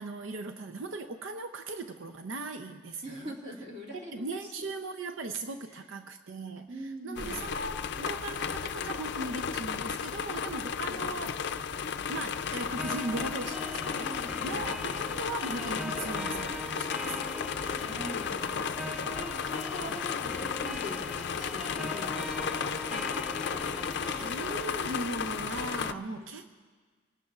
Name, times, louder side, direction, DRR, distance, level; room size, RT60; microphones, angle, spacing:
voice 1, 0.0-3.4 4.1-11.4 12.1-14.1 14.4-17.1 18.5-18.9 19.9-20.0 22.9-23.2 24.0-26.5, right 2 dB, 80° right, 7 dB, 0.6 m, -38 dB
voice 2, 3.0-4.3 4.6-4.7 6.7-7.4 10.4-11.0 14.0-14.7 17.0-17.2 17.6-24.4 25.9-26.3, equal, 40° right, -2 dB, 2.5 m, -44 dB
sound 1, 7.2-25.9, left 6 dB, 60° left, 0.5 m, -34 dB
sound 2, 7.2-9.6, equal, 60° right, 4.7 m, -50 dB
sound 3, 12.8-24.8, equal, 5° right, 0.4 m, -41 dB
25.0 x 19.0 x 2.4 m, 1.5 s
head